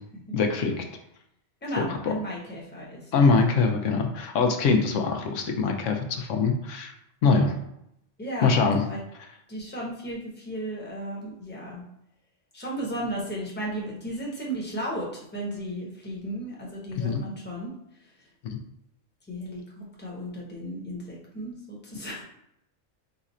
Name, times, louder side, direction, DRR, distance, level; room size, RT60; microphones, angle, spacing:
voice 1, 0.3-0.8 1.8-2.1 3.1-6.9 7.2-7.6 8.4-8.8 17.0-17.2 18.4-18.6, left 4 dB, 80° left, 4 dB, 1.0 m, -23 dB
voice 2, 1.6-3.0 8.2-8.6 8.9-9.0 9.5-11.8 12.5-17.7 19.3-22.2, right 1 dB, 10° left, -4 dB, 0.9 m, -34 dB
4.1 x 2.4 x 4.1 m, 0.77 s
omnidirectional pair, 1.3 m